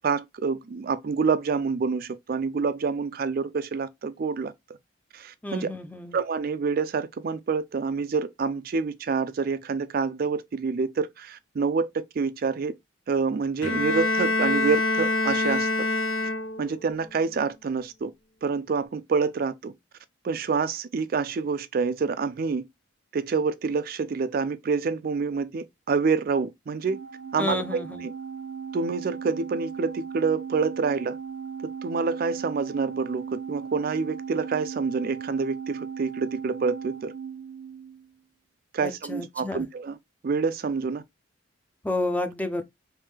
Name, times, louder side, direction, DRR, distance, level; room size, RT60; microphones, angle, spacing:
voice 1, 0.0-4.5 5.1-5.7 6.1-12.7 13.1-15.7 16.6-18.1 18.4-19.7 20.2-22.6 23.1-27.0 27.3-28.1 28.7-31.2 31.8-37.1 38.7-40.0 40.2-41.0, right 5 dB, 50° right, 0.4 m, -27 dB
voice 2, 5.4-6.1 27.4-28.0 38.8-39.6 41.8-42.6, left 2 dB, 10° left, 0.5 m, -30 dB
Bowed string instrument, 13.6-16.8, left 2 dB, 85° left, 0.6 m, -25 dB
Organ, 26.9-38.1, right 6 dB, 85° right, 0.7 m, -37 dB
3.5 x 3.1 x 3.2 m
head